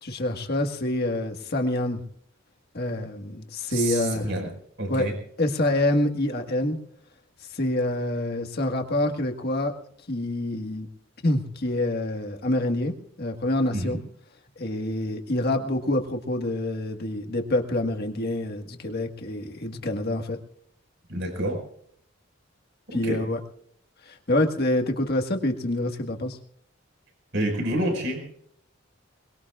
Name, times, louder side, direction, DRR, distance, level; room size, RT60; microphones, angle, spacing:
voice 1, 0.0-2.0 2.7-4.3 4.9-5.1 5.4-6.8 7.5-9.7 10.1-10.9 11.2-14.0 14.6-20.4 22.9-23.4 24.1-26.4, left 1 dB, 50° left, 4 dB, 1.7 m, -26 dB
voice 2, 3.7-4.5 4.8-5.1 13.7-14.0 21.1-21.6 22.9-23.2 27.3-28.2, right 1 dB, 65° right, 2 dB, 5.3 m, -28 dB
22.5 x 21.5 x 2.5 m, 0.65 s
head